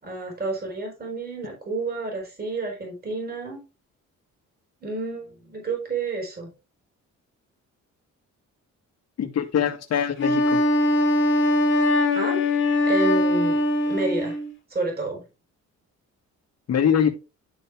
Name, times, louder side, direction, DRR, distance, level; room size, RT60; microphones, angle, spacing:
voice 1, 0.0-3.6 4.8-6.5 12.1-12.4 12.9-13.6 13.9-14.4 14.7-15.2, right 3 dB, 30° right, 1 dB, 4.4 m, -30 dB
voice 2, 9.2-10.6 16.7-17.1, left 8 dB, 55° left, 4 dB, 2.0 m, -23 dB
Wind instrument woodwind instrument, 10.2-14.5, left 1 dB, 40° left, 2.6 m, -21 dB
12.0 x 4.0 x 3.5 m, 0.29 s
cardioid pair, 90°, 30 cm